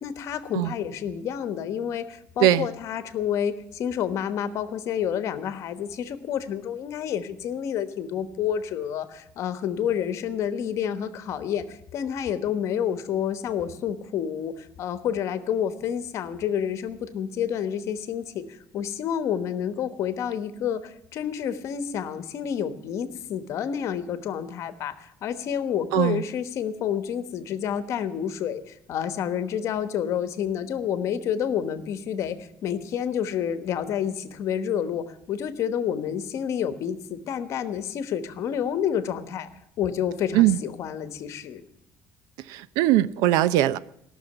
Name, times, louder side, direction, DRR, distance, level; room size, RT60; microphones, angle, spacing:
voice 1, 0.0-39.5 39.8-41.6, left 8 dB, 50° left, 1.2 m, -29 dB
voice 2, 25.9-26.2 40.3-40.6 42.5-43.8, right 14 dB, 90° right, 0.6 m, -20 dB
17.0 x 6.4 x 9.8 m
cardioid pair, 160°, 6 cm